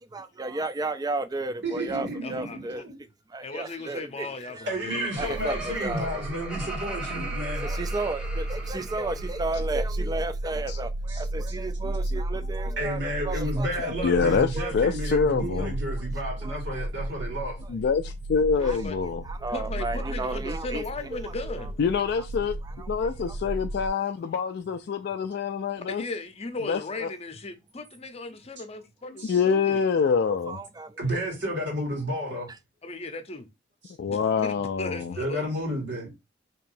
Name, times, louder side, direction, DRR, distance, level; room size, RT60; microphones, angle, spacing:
voice 1, 0.1-2.8 3.3-4.7 5.2-6.3 7.5-14.2 14.5-14.7 15.5-15.7 16.0-16.1 16.4-17.1 18.6-18.8 19.2-20.9 21.2-21.3 22.6-22.9 23.2-23.5 30.3-31.0, right 2 dB, 20° right, 0.4 m, -34 dB
voice 2, 1.6-2.6 2.8-3.0 4.7-7.7 11.1-11.2 12.8-17.6 29.2-29.4 31.0-32.5 35.2-36.1, equal, 70° right, 2.0 m, -31 dB
voice 3, 2.2-2.8 3.4-5.6 5.9-6.4 18.6-19.0 19.5-21.8 25.9-29.8 32.8-33.5 34.0-35.5, left 2 dB, 35° left, 0.7 m, -37 dB
Laughter, 4.4-9.6, right 2 dB, 5° right, 1.1 m, -39 dB
sound 1, 5.2-23.9, right 1 dB, 85° right, 0.4 m, -34 dB
voice 4, 14.0-15.7 17.7-19.2 21.8-22.6 22.9-26.0 26.7-27.1 29.2-30.6 34.0-35.1, left 5 dB, 60° left, 0.3 m, -25 dB
4.6 x 3.0 x 2.6 m
head